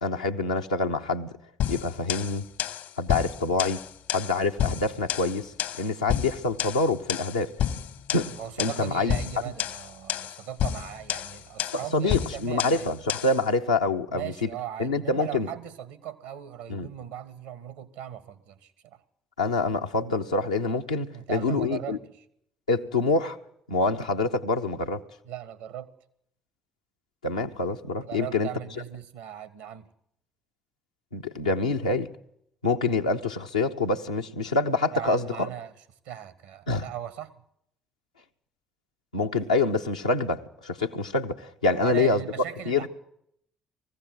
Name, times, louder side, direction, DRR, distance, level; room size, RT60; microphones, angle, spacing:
voice 1, 0.0-1.3 1.7-2.5 3.0-3.8 4.1-7.5 8.1-8.3 8.6-9.1 11.7-14.5 14.8-15.5 16.7-16.9 19.4-22.0 22.7-23.4 23.7-25.0 27.2-28.5 31.1-32.1 32.6-35.5 36.7-36.8 39.1-42.2 42.7-42.9, left 3 dB, 90° left, 0.8 m, -26 dB
sound 1, 1.6-13.4, left 10 dB, 65° left, 1.1 m, -31 dB
voice 2, 8.3-12.9 14.1-19.0 21.1-22.2 25.2-25.9 28.0-29.9 34.9-35.8 36.0-37.3 41.7-42.9, right 11 dB, 75° right, 1.4 m, -38 dB
20.0 x 15.5 x 9.3 m
figure-of-eight pair, 50°, 3 cm